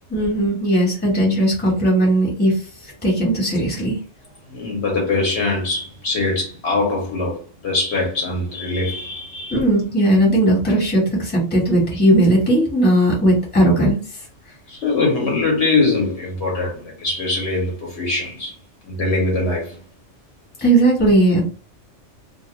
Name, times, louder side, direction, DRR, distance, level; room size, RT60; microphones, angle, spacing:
voice 1, 0.1-2.6 3.0-4.0 9.5-14.0 20.6-21.4, right 1 dB, 10° left, 0.9 m, -17 dB
voice 2, 4.5-9.6 14.7-18.5 18.8-19.8, left 3 dB, 65° left, 0.8 m, -22 dB
2.2 x 2.2 x 2.9 m
omnidirectional pair, 1.3 m